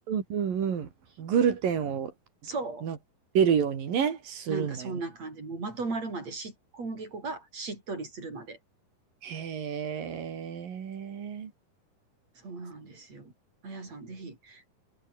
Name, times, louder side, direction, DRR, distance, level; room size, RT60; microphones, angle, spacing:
voice 1, 0.1-0.9 1.2-2.1 2.8-3.0 3.3-4.9 9.2-11.5, right 7 dB, 65° right, 4.5 m, -28 dB
voice 2, 2.4-2.9 4.5-8.6 12.4-13.3 13.6-14.7, right 3 dB, 45° right, 7.9 m, -37 dB
omnidirectional pair, 4.3 m